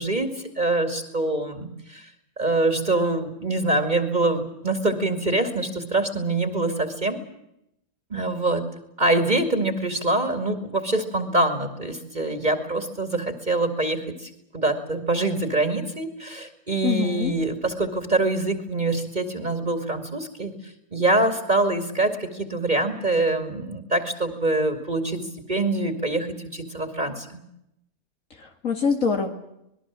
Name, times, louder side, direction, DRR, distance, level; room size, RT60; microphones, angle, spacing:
voice 1, 0.0-2.1 2.4-7.2 8.1-8.6 9.0-20.5 20.9-25.2 25.5-27.4, right 2 dB, 30° right, 7 dB, 2.6 m, -25 dB
voice 2, 16.8-17.3 28.4-29.3, left 6 dB, 65° left, 4 dB, 2.5 m, -24 dB
26.5 x 20.5 x 7.5 m, 0.80 s
omnidirectional pair, 1.5 m